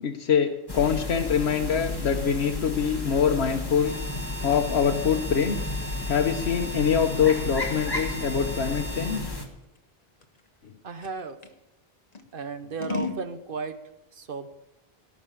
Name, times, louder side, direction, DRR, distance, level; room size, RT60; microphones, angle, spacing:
voice 1, 0.0-3.9 4.4-5.6 6.1-9.2, left 7 dB, 85° left, 2 dB, 1.2 m, -24 dB
sound 1, 0.7-9.4, left 2 dB, 20° left, 1.7 m, -33 dB
sound 2, 3.8-9.2, right 2 dB, 10° right, 3.5 m, -40 dB
Scissors, 9.6-11.6 12.1-13.3, left 3 dB, 40° left, 1.3 m, -39 dB
voice 2, 10.8-11.4 12.3-13.8 14.2-14.5, right 4 dB, 60° right, 10 dB, 1.2 m, -34 dB
18.0 x 6.1 x 8.5 m, 0.96 s
omnidirectional pair, 1.0 m